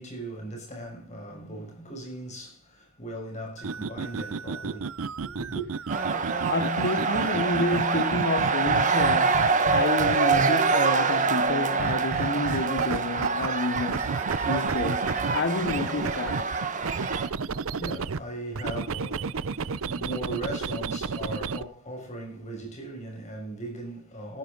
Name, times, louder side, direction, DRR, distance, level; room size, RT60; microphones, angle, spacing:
voice 1, 0.0-5.7 17.3-24.4, right 1 dB, 35° left, 6.3 m, -38 dB
sound 1, 3.6-10.8 11.8-13.5 13.8-18.2 18.5-21.6, right 5 dB, 70° right, 0.6 m, -32 dB
sound 2, 5.9-17.3, right 4 dB, 35° right, 1.4 m, -25 dB
voice 2, 6.5-14.1 14.5-16.5 19.9-20.0, left 2 dB, 50° left, 0.9 m, -29 dB
17.5 x 10.5 x 3.9 m
head